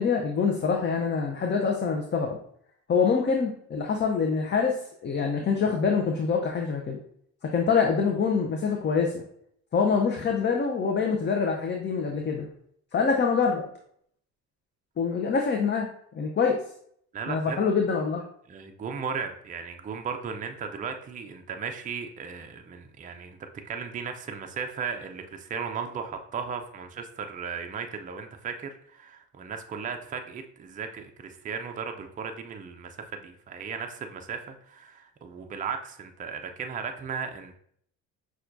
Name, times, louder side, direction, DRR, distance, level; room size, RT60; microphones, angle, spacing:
voice 1, 0.0-2.4 2.9-7.0 7.5-9.2 9.7-12.5 12.9-13.6 15.0-15.9 16.1-16.6 17.3-18.2, left 5 dB, 30° left, 2 dB, 0.6 m, -25 dB
voice 2, 17.1-17.6 18.5-23.4 23.6-37.6, right 6 dB, 20° right, 5 dB, 0.4 m, -36 dB
5.7 x 2.4 x 2.5 m, 0.65 s
supercardioid pair, 70°, 37 cm